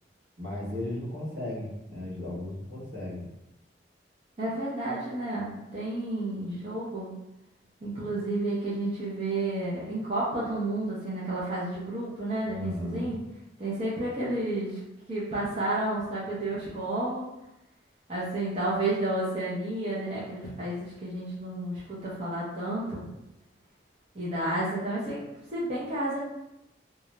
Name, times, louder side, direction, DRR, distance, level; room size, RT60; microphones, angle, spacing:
voice 1, 0.4-3.3 12.4-13.2, left 1 dB, 65° right, -6 dB, 0.9 m, -35 dB
voice 2, 4.4-7.1 7.8-13.2 13.6-14.8 15.1-17.3 18.1-23.0 24.1-25.2 25.5-26.2, right 1 dB, 35° right, -9 dB, 0.6 m, -31 dB
2.3 x 2.0 x 2.9 m, 0.90 s
head